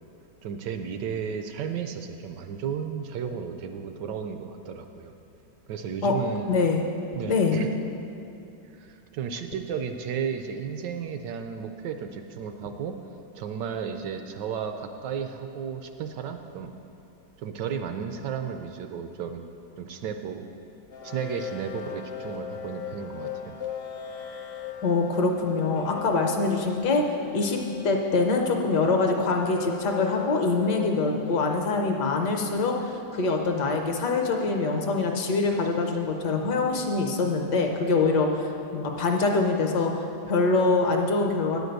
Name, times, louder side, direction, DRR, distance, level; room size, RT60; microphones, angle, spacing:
voice 1, 0.4-5.1 5.7-6.5 7.1-7.7 8.7-12.9 13.3-16.7 17.4-19.5 19.8-20.5 21.0-23.6, right 7 dB, 75° right, 6 dB, 1.0 m, -33 dB
voice 2, 6.5-6.8 7.3-7.6 24.8-27.0 27.3-32.7 33.1-41.6, left 3 dB, 65° left, 2 dB, 1.3 m, -24 dB
sound 1, 20.9-31.4, left 8 dB, 45° left, 0.7 m, -39 dB
9.8 x 5.2 x 7.9 m, 2.8 s
omnidirectional pair, 2.2 m